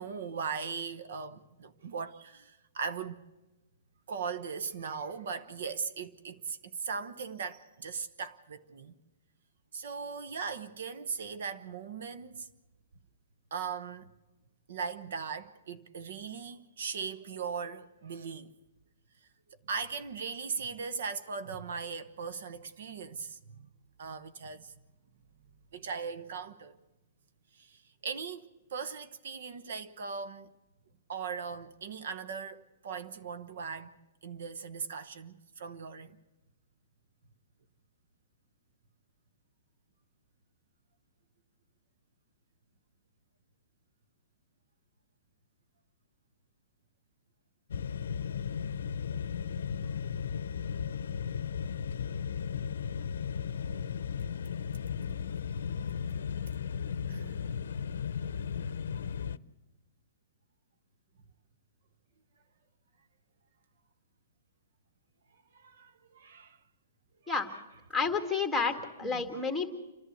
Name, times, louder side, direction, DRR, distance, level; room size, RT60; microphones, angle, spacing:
voice 1, 0.0-3.2 4.1-8.9 9.7-12.5 13.5-14.1 14.7-18.5 19.7-23.7 24.0-24.7 25.7-26.8 27.5-30.5 31.1-34.0 34.2-36.2 57.1-57.4 65.5-66.6 67.2-67.3 69.0-69.3, right 5 dB, 70° right, 1.0 m, -39 dB
sound 1, 47.7-59.4, left 7 dB, 80° left, 0.6 m, -35 dB
voice 2, 67.9-69.7, left 5 dB, ahead, 1.9 m, -30 dB
28.5 x 11.5 x 8.0 m
hypercardioid pair, 150°, 0 cm